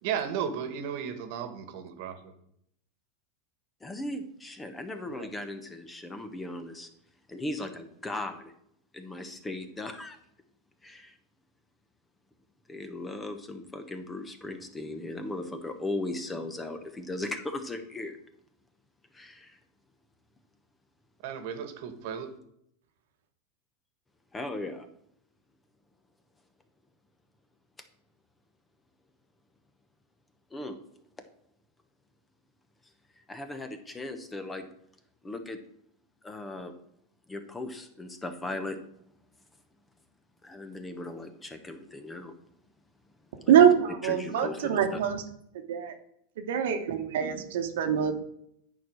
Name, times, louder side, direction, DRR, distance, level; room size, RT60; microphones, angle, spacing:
voice 1, 0.0-2.3 5.1-5.3 21.2-22.3, right 8 dB, 60° right, 9 dB, 1.4 m, -34 dB
voice 2, 3.8-6.9 7.3-8.5 8.9-10.2 10.8-11.2 12.7-18.2 19.1-19.6 24.3-24.9 30.5-30.8 33.3-34.7 35.2-35.6 36.2-36.7 37.3-38.8 40.4-42.3 43.4-43.7 44.0-45.0, left 2 dB, 15° left, 8 dB, 1.0 m, -37 dB
voice 3, 43.5-45.2 45.7-45.9 46.4-48.1, right 9 dB, 75° right, 6 dB, 1.2 m, -24 dB
9.2 x 4.7 x 6.3 m, 0.73 s
supercardioid pair, 125°, 0 cm